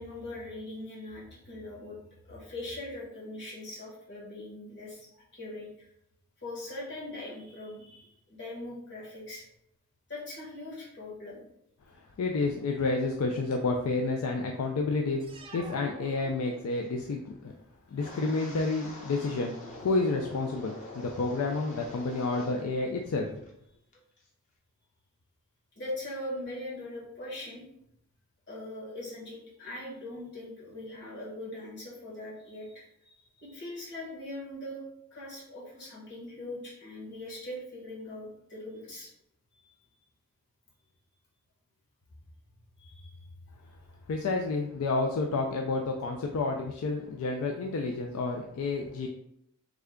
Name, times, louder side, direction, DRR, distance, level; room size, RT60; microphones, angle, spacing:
voice 1, 0.0-2.0 2.2-5.9 6.4-9.4 10.1-11.4 25.7-27.6 28.5-34.8 35.1-39.1 39.6-39.7 42.8-43.3, left 1 dB, 50° left, -6 dB, 1.4 m, -41 dB
voice 2, 12.2-15.2 15.5-17.5 17.9-19.5 19.8-23.3 44.1-49.1, left 3 dB, 75° left, 2 dB, 0.3 m, -30 dB
sound 1, 15.2-17.1, right 2 dB, 25° right, 0.3 m, -47 dB
Wind, 17.9-22.8 23.1-23.5 23.9-24.2, left 1 dB, 35° left, 0.7 m, -45 dB
3.5 x 2.2 x 3.6 m, 0.77 s
head